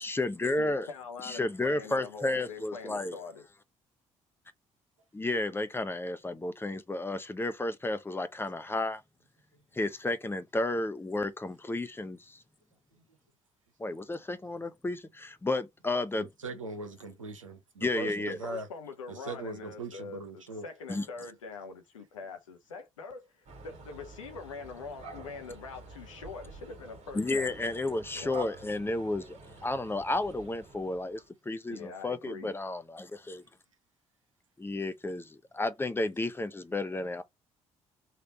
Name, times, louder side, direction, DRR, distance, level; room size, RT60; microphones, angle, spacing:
voice 1, 0.0-0.9 1.2-3.2 5.1-9.0 9.7-12.4 13.8-16.3 17.8-18.4 20.9-21.0 27.1-31.2 31.5-33.4 34.6-37.2, left 2 dB, 15° left, 0.7 m, -32 dB
voice 2, 0.6-3.5 18.3-27.5 28.1-28.4 31.7-32.5, left 5 dB, 80° left, 0.6 m, -44 dB
voice 3, 16.2-18.7 19.1-20.7, right 3 dB, 85° right, 0.7 m, -40 dB
sound 1, 23.5-31.3, right 3 dB, 45° right, 1.6 m, -48 dB
3.3 x 2.5 x 3.9 m
figure-of-eight pair, 45°, 16 cm